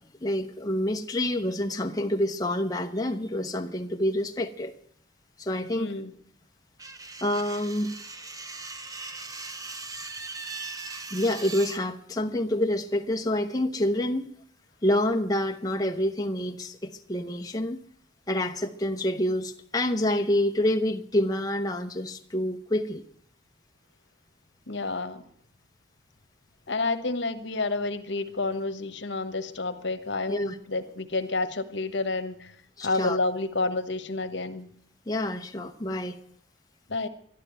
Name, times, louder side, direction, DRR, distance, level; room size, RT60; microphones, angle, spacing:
voice 1, 0.2-4.7 5.4-6.0 7.2-8.0 11.1-14.3 14.8-17.8 18.3-23.0 30.3-30.6 32.8-33.2 35.1-36.2, left 1 dB, 20° left, 0.8 m, -27 dB
voice 2, 5.7-6.1 24.7-25.2 26.7-32.5 32.8-34.7 36.9-37.1, left 3 dB, 65° left, 1.2 m, -29 dB
sound 1, 6.8-11.8, right 3 dB, 20° right, 0.9 m, -39 dB
12.0 x 12.0 x 9.3 m
head